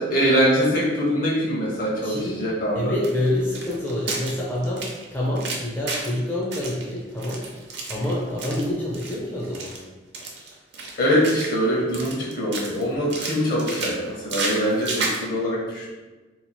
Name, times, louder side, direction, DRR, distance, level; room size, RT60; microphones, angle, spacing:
voice 1, 0.0-3.0 11.0-15.9, equal, 50° left, -4 dB, 1.0 m, -23 dB
voice 2, 2.0-2.4 2.7-7.5 7.9-9.8, left 1 dB, 10° left, -6 dB, 0.5 m, -27 dB
sound 1, 3.0-6.2 6.5-8.6 8.9-9.1 9.4-9.8 10.1-11.7 11.9-12.8 13.1-15.2, right 3 dB, 60° right, 0.6 m, -32 dB
2.9 x 2.4 x 4.0 m, 1.2 s
head